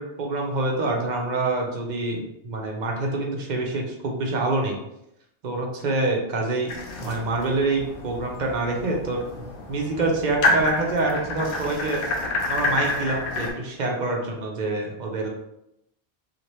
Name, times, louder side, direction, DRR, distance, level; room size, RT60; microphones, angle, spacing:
voice 1, 0.0-4.8 5.4-6.7 7.0-9.3 9.7-12.0 12.5-15.3, right 2 dB, 50° right, 1 dB, 0.6 m, -26 dB
sound 1, 6.7-13.5, left 2 dB, 60° left, 0.7 m, -28 dB
2.8 x 2.5 x 3.1 m, 0.82 s
omnidirectional pair, 1.1 m